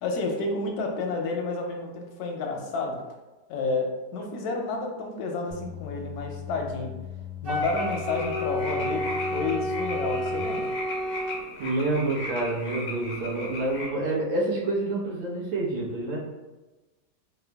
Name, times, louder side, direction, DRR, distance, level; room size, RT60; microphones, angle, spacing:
voice 1, 0.0-3.0 3.5-6.9 7.4-10.7, left 3 dB, 70° left, 1 dB, 0.9 m, -30 dB
sound 1, 5.5-10.4, left 11 dB, 10° right, 0.5 m, -39 dB
Wind instrument woodwind instrument, 7.4-11.4, equal, 65° right, 0.5 m, -30 dB
sound 2, 7.6-13.9, left 2 dB, 90° left, 0.5 m, -37 dB
voice 2, 11.6-16.2, right 2 dB, 80° right, -4 dB, 1.7 m, -28 dB
4.5 x 2.1 x 3.3 m, 1.1 s
omnidirectional pair, 2.1 m